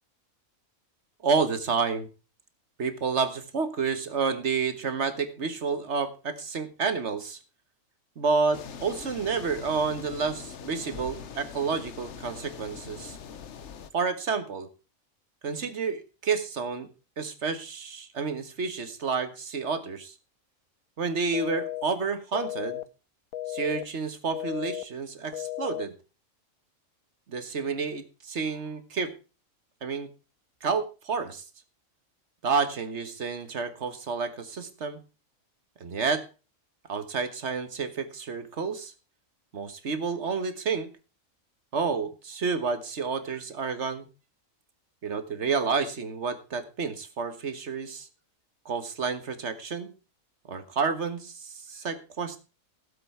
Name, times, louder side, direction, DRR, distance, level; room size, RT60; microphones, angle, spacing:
voice 1, 1.2-2.1 2.8-7.4 8.2-13.2 13.9-14.7 15.4-16.9 17.2-20.1 21.0-22.8 23.5-25.9 27.3-29.1 29.8-30.1 30.6-31.4 32.4-35.0 35.8-36.2 36.9-38.9 39.5-40.9 41.7-44.1 45.0-48.1 48.6-49.9 50.5-52.4, right 5 dB, 55° right, 10 dB, 1.7 m, -30 dB
sound 1, 8.5-13.9, left 7 dB, 60° left, 1.2 m, -42 dB
sound 2, 21.3-21.8 22.3-22.8 23.3-23.8 24.3-24.8 25.3-25.8, left 14 dB, 85° left, 1.2 m, -34 dB
16.5 x 7.7 x 4.5 m, 0.33 s
omnidirectional pair, 1.4 m